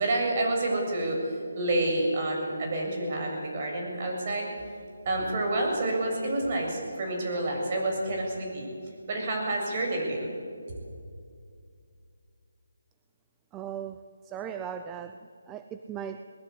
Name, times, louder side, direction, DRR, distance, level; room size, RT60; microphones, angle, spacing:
voice 1, 0.0-4.5 5.0-8.7 9.1-10.3, right 2 dB, 35° right, 0 dB, 7.4 m, -28 dB
voice 2, 13.5-14.0 14.3-15.2 15.5-16.2, right 8 dB, 15° right, 9 dB, 0.6 m, -37 dB
21.5 x 20.5 x 8.5 m, 2.3 s
figure-of-eight pair, 160°, 0 cm